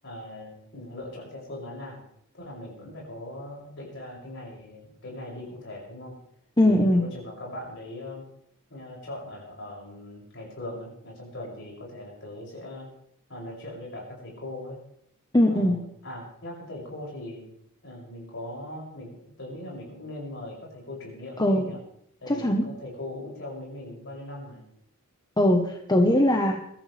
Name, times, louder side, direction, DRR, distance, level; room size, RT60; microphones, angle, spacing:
voice 1, 0.0-2.0 2.3-6.2 6.6-8.3 8.7-12.9 13.3-14.8 15.5-17.5 17.8-21.8 22.2-24.6, left 1 dB, 60° left, -3 dB, 7.1 m, -40 dB
voice 2, 6.6-7.1 15.3-15.8 21.4-21.7 22.3-22.6 25.4-26.7, left 1 dB, 20° left, 3 dB, 1.1 m, -21 dB
23.0 x 13.5 x 3.4 m, 0.73 s
head